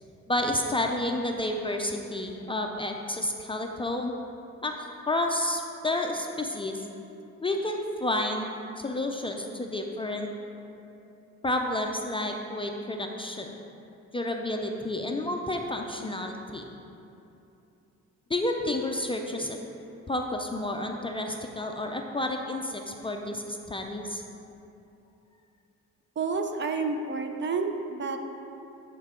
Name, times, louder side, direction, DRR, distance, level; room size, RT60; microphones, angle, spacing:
voice 1, 0.3-4.1 4.6-4.7 5.0-6.8 7.4-10.3 11.4-13.6 14.1-16.7 18.3-19.6 20.1-24.2, left 1 dB, 20° left, 2 dB, 0.4 m, -30 dB
voice 2, 26.2-28.2, right 4 dB, 40° right, 5 dB, 0.6 m, -29 dB
8.5 x 4.6 x 3.7 m, 2.8 s
cardioid pair, 90°, 30 cm